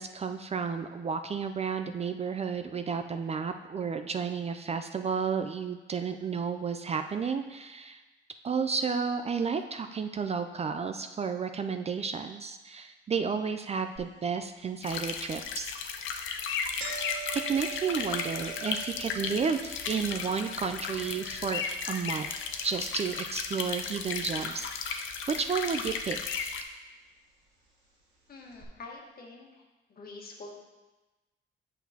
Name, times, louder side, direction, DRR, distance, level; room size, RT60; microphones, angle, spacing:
voice 1, 0.0-8.0 8.4-15.7 17.3-26.5, right 6 dB, 30° right, 8 dB, 0.4 m, -32 dB
sound 1, 14.0-14.1 14.6-14.7 15.5-15.7 16.0-16.2 16.4-24.6 24.9-25.6 26.4-26.5 27.5-27.6 27.8-27.9 28.5-28.6, right 8 dB, 70° right, 1.8 m, -46 dB
sound 2, 14.8-26.6, left 6 dB, 80° left, 0.6 m, -35 dB
voice 2, 28.3-29.6 29.9-30.6, left 3 dB, 50° left, 0 dB, 1.4 m, -46 dB
8.2 x 5.8 x 2.8 m, 1.2 s
cardioid pair, 90°, 20 cm